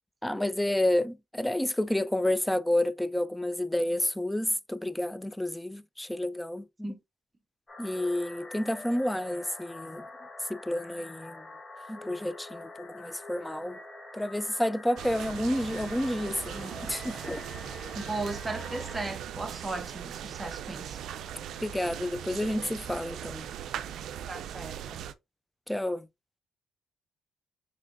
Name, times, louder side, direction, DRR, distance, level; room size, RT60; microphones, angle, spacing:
voice 1, 0.2-6.9 7.8-10.1 10.5-11.4 11.9-13.8 14.1-17.4 21.6-23.5 25.7-26.1, left 1 dB, 5° left, 0.3 m, -30 dB
sound 1, 7.7-19.0, left 2 dB, 30° left, 1.1 m, -46 dB
sound 2, 15.0-25.1, right 9 dB, 75° right, 0.4 m, -39 dB
voice 2, 17.9-21.0 24.3-25.0, right 2 dB, 25° right, 1.0 m, -37 dB
5.0 x 3.1 x 2.6 m
cardioid pair, 90°, 0 cm